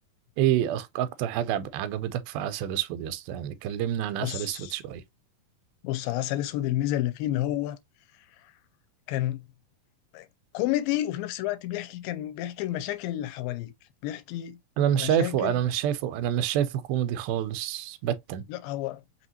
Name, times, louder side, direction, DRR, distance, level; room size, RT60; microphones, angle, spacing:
voice 1, 0.4-5.0 14.8-18.4, right 11 dB, 85° right, 2.4 m, -28 dB
voice 2, 4.2-4.8 5.8-7.8 9.1-9.4 10.1-10.3 10.5-13.7 14.0-14.6 14.9-15.6 18.5-19.0, left 14 dB, 80° left, 2.1 m, -30 dB
5.8 x 2.8 x 2.7 m
omnidirectional pair, 4.3 m